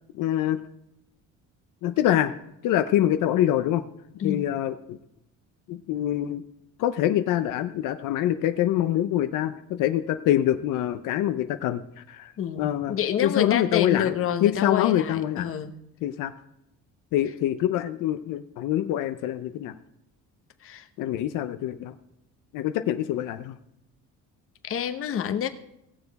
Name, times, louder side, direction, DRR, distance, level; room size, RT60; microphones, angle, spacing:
voice 1, 0.1-0.6 1.8-2.3 2.6-3.8 4.2-5.0 5.7-6.4 6.8-12.3 12.6-12.9 13.2-15.5 16.0-16.3 17.1-19.8 21.0-21.9 22.5-23.6, left 12 dB, 80° left, 9 dB, 0.7 m, -25 dB
voice 2, 12.4-15.8 20.6-20.9 24.6-25.5, left 9 dB, 45° left, 8 dB, 0.9 m, -28 dB
17.5 x 6.9 x 4.1 m, 0.83 s
cardioid pair, 140°, 31 cm